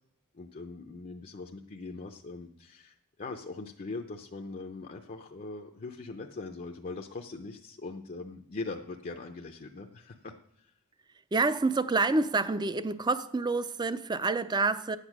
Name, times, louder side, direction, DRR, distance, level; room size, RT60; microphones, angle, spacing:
voice 1, 0.3-10.7, left 3 dB, 40° left, 0.6 m, -41 dB
voice 2, 11.3-15.0, right 3 dB, 20° right, 0.4 m, -28 dB
9.6 x 8.2 x 6.0 m
head